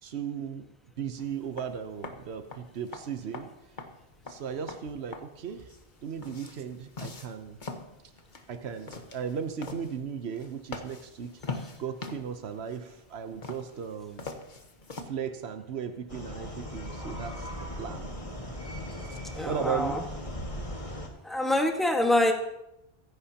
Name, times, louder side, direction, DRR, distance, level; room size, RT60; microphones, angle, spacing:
voice 1, 0.0-0.7 1.0-3.5 4.3-5.7 6.0-7.6 8.5-14.3 15.0-17.5 17.8-18.1 19.1-19.2 19.4-20.0, right 7 dB, 80° right, 7 dB, 1.1 m, -36 dB
sound 1, 1.2-15.1, left 3 dB, 50° left, 1.3 m, -44 dB
sound 2, 16.1-21.1, left 1 dB, 30° left, 1.9 m, -38 dB
voice 2, 19.3-20.0 21.2-22.3, left 1 dB, ahead, 2 dB, 1.5 m, -25 dB
24.0 x 11.0 x 2.9 m, 0.87 s
omnidirectional pair, 1.1 m